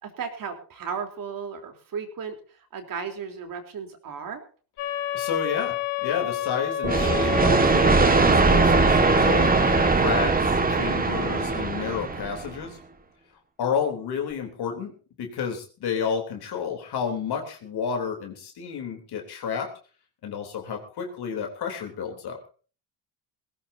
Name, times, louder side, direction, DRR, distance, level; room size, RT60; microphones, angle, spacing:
voice 1, 0.0-2.4 2.7-4.4, right 6 dB, 40° right, 6 dB, 3.8 m, -35 dB
sound 1, 4.8-9.9, left 10 dB, 75° left, 3.6 m, -30 dB
voice 2, 5.1-12.8 13.6-14.9 15.2-19.7 20.2-22.4, left 6 dB, 50° left, 3 dB, 3.5 m, -31 dB
sound 2, 6.8-12.5, right 4 dB, 15° right, 1.8 m, -20 dB
19.5 x 17.0 x 2.8 m, 0.38 s
cardioid pair, 130°, 49 cm